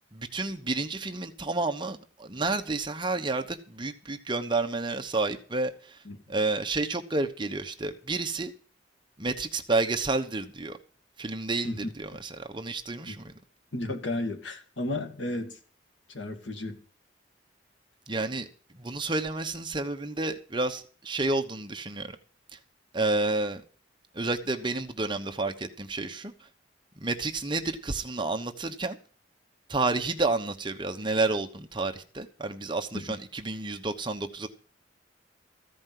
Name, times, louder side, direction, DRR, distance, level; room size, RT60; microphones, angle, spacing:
voice 1, 0.1-6.0 6.3-8.5 9.2-10.8 11.2-13.3 18.1-18.5 18.7-22.2 22.5-22.6 22.9-23.6 24.1-26.5 27.0-29.0 29.7-34.5, right 3 dB, 25° right, 1.0 m, -30 dB
voice 2, 13.7-15.6 16.1-16.8 32.9-33.0, left 2 dB, 90° left, 2.1 m, -33 dB
14.5 x 5.3 x 9.3 m
head